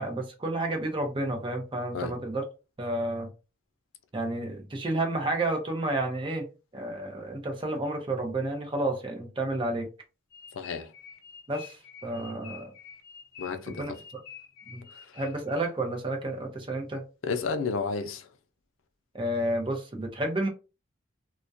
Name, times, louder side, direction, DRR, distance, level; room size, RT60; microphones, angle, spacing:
voice 1, 0.0-2.4 2.8-3.3 4.1-6.4 6.7-9.9 11.5-12.7 13.7-14.2 14.7-14.9 15.1-17.0 19.1-20.5, right 1 dB, 25° right, 0.5 m, -31 dB
sound 1, 10.3-15.6, left 7 dB, 45° left, 0.7 m, -48 dB
voice 2, 10.6-10.9 13.4-13.8 17.2-18.3, left 4 dB, 90° left, 0.4 m, -31 dB
2.3 x 2.1 x 2.6 m
head